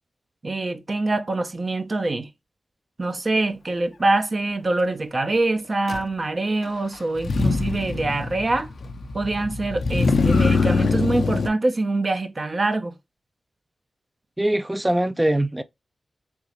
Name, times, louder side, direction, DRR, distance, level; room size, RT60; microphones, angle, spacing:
voice 1, 0.4-2.3 3.0-8.7 9.1-12.9, right 2 dB, 50° right, 0.7 m, -24 dB
Motor vehicle (road), 5.9-6.0 7.2-11.5, left 4 dB, 75° left, 0.5 m, -23 dB
voice 2, 14.4-15.6, right 1 dB, 15° right, 0.4 m, -22 dB
3.5 x 3.1 x 2.9 m
cardioid pair, 40°, 0 cm